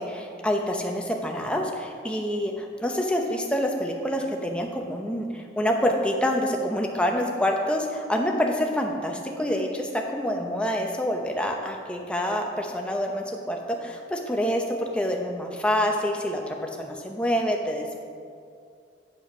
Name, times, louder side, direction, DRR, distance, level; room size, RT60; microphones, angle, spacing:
voice 1, 0.0-18.0, equal, 5° left, 1 dB, 0.7 m, -27 dB
7.9 x 7.6 x 5.5 m, 2.3 s
head